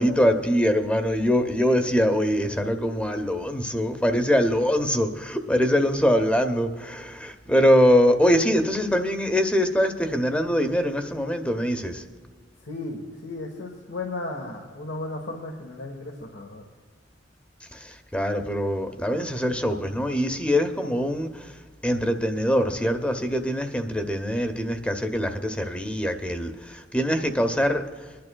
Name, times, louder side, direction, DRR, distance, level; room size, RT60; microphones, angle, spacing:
voice 1, 0.0-12.0 17.7-21.5 21.8-27.8, equal, 5° left, 7 dB, 0.8 m, -23 dB
voice 2, 12.6-16.6, left 2 dB, 80° left, 1 dB, 1.3 m, -35 dB
24.0 x 11.0 x 2.3 m, 1.5 s
head